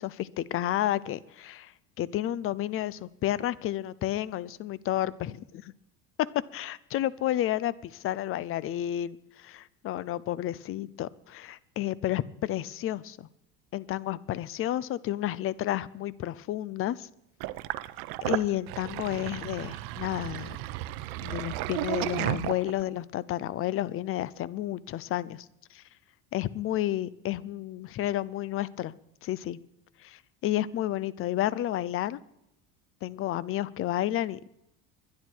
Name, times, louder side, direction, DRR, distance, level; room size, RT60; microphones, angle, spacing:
voice 1, 0.0-1.7 2.0-5.6 6.5-13.3 13.7-17.1 18.2-20.6 21.2-25.5 25.7-25.8 26.3-28.9 29.2-29.6 30.0-32.2 33.0-34.4, left 13 dB, 40° left, 20 dB, 0.6 m, -31 dB
Sink (filling or washing), 17.4-23.0, right 17 dB, 75° right, 0.8 m, -33 dB
23.0 x 10.5 x 4.6 m, 0.82 s
cardioid pair, 145°, 34 cm